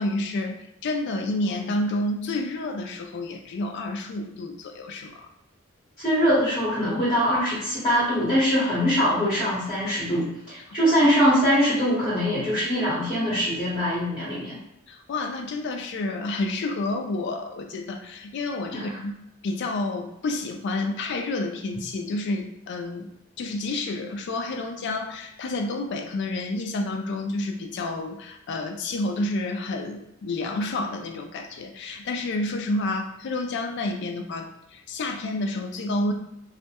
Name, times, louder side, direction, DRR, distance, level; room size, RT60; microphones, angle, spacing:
voice 1, 0.0-5.3 10.7-10.9 14.9-19.2 19.4-23.1 23.4-36.1, left 2 dB, 55° left, 4 dB, 0.3 m, -29 dB
voice 2, 6.0-14.6 18.7-18.9, equal, 20° left, -10 dB, 1.1 m, -23 dB
2.2 x 2.1 x 2.8 m, 0.82 s
head